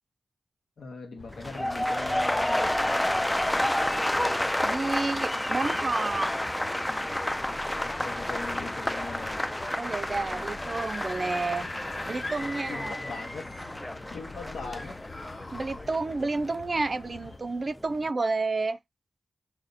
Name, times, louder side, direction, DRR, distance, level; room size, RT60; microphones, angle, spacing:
voice 1, 0.8-2.9 8.0-9.5 12.7-13.5 14.1-15.0, left 4 dB, 85° left, 1.3 m, -40 dB
sound 1, 1.2-17.4, left 4 dB, 70° left, 0.6 m, -47 dB
sound 2, 1.3-17.4 17.7-18.1, left 1 dB, 10° left, 0.4 m, -30 dB
voice 2, 4.6-6.3 9.8-11.7 12.1-13.0 15.5-18.8, right 3 dB, 50° right, 0.5 m, -30 dB
Screaming / Screech, 10.5-13.8 14.7-15.8, left 2 dB, 45° left, 1.0 m, -40 dB
3.4 x 2.8 x 4.0 m
cardioid pair, 50°, 0 cm